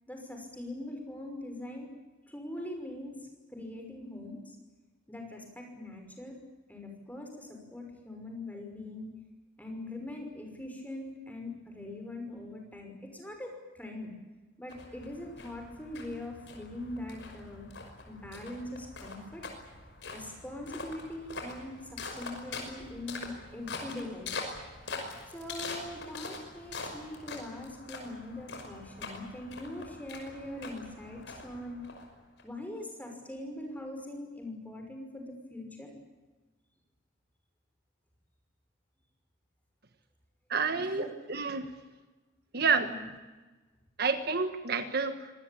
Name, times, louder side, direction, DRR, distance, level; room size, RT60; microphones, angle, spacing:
voice 1, 0.1-1.9 2.3-3.2 3.5-4.4 5.1-6.4 6.7-9.1 9.6-14.1 14.6-17.7 18.1-19.4 20.1-24.3 25.3-31.9 32.4-35.9 40.7-41.1 42.8-43.0, left 1 dB, 10° left, 3 dB, 5.8 m, -42 dB
sound 1, 14.7-32.4, left 3 dB, 65° left, 5.7 m, -44 dB
voice 2, 40.5-41.7 42.5-42.9 44.0-45.3, right 5 dB, 55° right, 9 dB, 1.5 m, -29 dB
25.5 x 19.5 x 8.7 m, 1.2 s
head